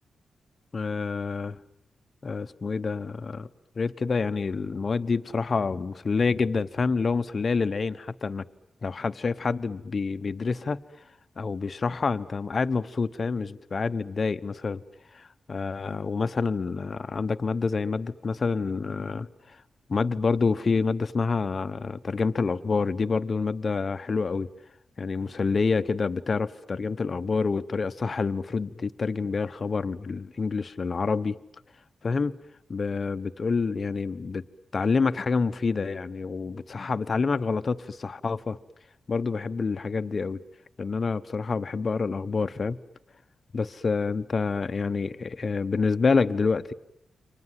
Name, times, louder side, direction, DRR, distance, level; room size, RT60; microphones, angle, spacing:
voice 1, 0.7-1.6 2.2-3.5 3.8-8.5 8.8-10.8 11.4-14.8 15.1-19.6 19.9-24.5 25.0-31.4 32.0-32.4 32.7-34.4 34.7-38.6 39.1-40.4 40.8-42.8 43.5-46.7, left 4 dB, 45° left, 11 dB, 1.1 m, -27 dB
29.5 x 25.0 x 7.7 m, 0.82 s
wide cardioid pair, 105°, 0 cm